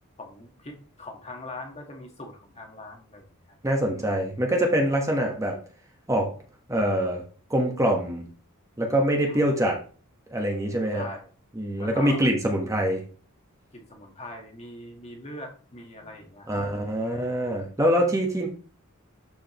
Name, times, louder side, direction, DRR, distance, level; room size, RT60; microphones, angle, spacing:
voice 1, 0.2-3.6 3.9-4.1 9.3-9.5 10.9-11.3 11.8-12.2 13.7-16.6 17.0-17.5, left 2 dB, 30° left, 3 dB, 1.6 m, -42 dB
voice 2, 3.6-5.6 6.1-6.3 6.7-7.2 7.5-8.2 8.8-9.8 10.3-11.0 11.6-13.0 16.5-18.5, right 1 dB, 15° right, 1 dB, 1.3 m, -24 dB
12.0 x 5.0 x 3.1 m, 0.40 s
head